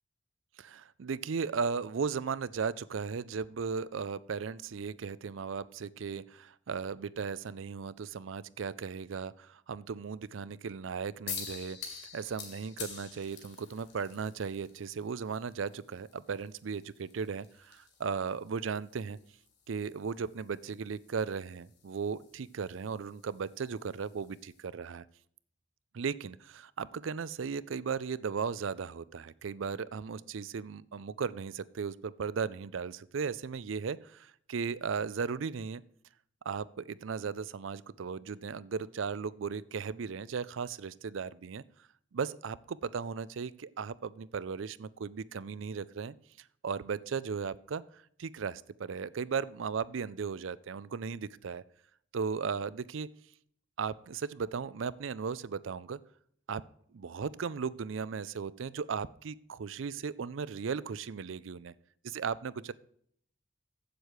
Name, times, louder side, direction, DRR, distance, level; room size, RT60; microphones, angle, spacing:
voice 1, 0.6-19.2 19.7-25.0 25.9-35.8 36.5-41.6 42.1-46.1 46.6-51.6 52.1-53.1 53.8-56.0 56.5-56.6 56.9-61.7 62.1-62.7, right 5 dB, 75° right, 18 dB, 0.5 m, -36 dB
sound 1, 11.3-24.6, left 6 dB, 55° left, 2.7 m, -49 dB
8.1 x 7.8 x 6.4 m, 0.64 s
head